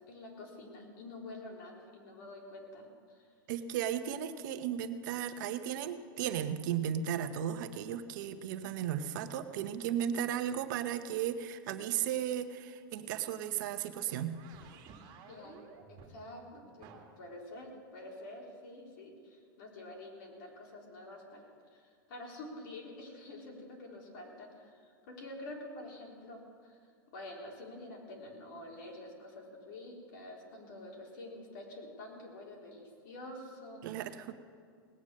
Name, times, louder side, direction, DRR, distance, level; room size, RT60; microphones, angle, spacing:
voice 1, 0.1-3.2 15.3-15.6 15.9-16.9 17.2-21.4 21.7-26.8 27.1-33.9, left 1 dB, 65° left, -1 dB, 3.9 m, -48 dB
voice 2, 3.5-14.4 33.8-34.3, right 9 dB, 60° right, 9 dB, 0.9 m, -35 dB
sound 1, 14.0-17.2, right 5 dB, 35° right, 2.1 m, -54 dB
18.5 x 9.0 x 6.5 m, 2.1 s
supercardioid pair, 140°, 12 cm